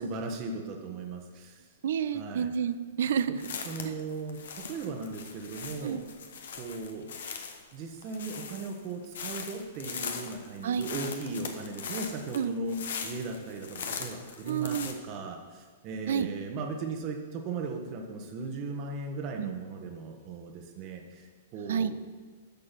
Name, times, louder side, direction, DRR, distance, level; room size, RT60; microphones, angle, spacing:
voice 1, 0.0-1.7 2.1-2.5 3.3-3.4 3.6-6.0 6.6-7.1 7.7-22.0, right 3 dB, 35° right, 3 dB, 1.2 m, -37 dB
voice 2, 1.8-3.4 3.8-3.9 5.8-6.0 10.6-10.9 12.3-12.5 14.5-14.9 16.1-16.3 19.4-19.5 21.7-21.9, right 8 dB, 60° right, 14 dB, 0.5 m, -29 dB
sound 1, 3.4-14.9, left 6 dB, 60° left, 1.2 m, -40 dB
10.5 x 6.7 x 6.0 m, 1.5 s
figure-of-eight pair, 105°, 0 cm